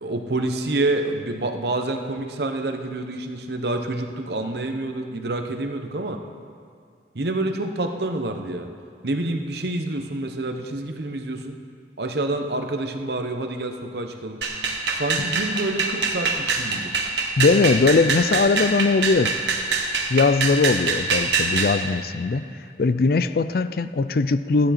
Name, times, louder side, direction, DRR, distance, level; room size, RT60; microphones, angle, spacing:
voice 1, 0.0-6.2 7.1-8.7 9.0-11.6 12.0-14.4 15.0-16.9, right 2 dB, 65° right, 5 dB, 0.9 m, -27 dB
sound 1, 14.4-21.8, right 4 dB, 80° right, 1.4 m, -24 dB
voice 2, 17.4-19.3 20.1-22.4 22.8-24.7, left 4 dB, 55° left, 13 dB, 0.4 m, -20 dB
14.5 x 10.5 x 4.3 m, 2.3 s
head